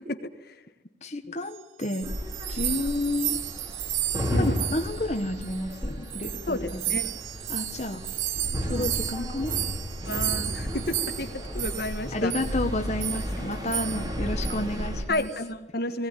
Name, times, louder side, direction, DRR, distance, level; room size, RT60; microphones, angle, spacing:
voice 1, 1.0-2.1 2.5-3.4 4.3-7.0 7.5-8.0 8.6-9.5 12.1-15.3, left 1 dB, 35° left, 4 dB, 1.5 m, -31 dB
sound 1, 1.5-5.8 6.1-12.0 12.3-12.5 13.0-13.3 13.7-14.1 14.4-14.6 15.1-15.4, right 14 dB, 85° right, 1.1 m, -33 dB
sound 2, 2.0-15.0, equal, 20° right, 3.9 m, -33 dB
voice 2, 6.5-7.1 8.7-8.9 10.0-12.3 15.1-16.1, left 2 dB, 50° left, 7 dB, 1.5 m, -31 dB
20.0 x 18.0 x 9.9 m, 1.0 s
head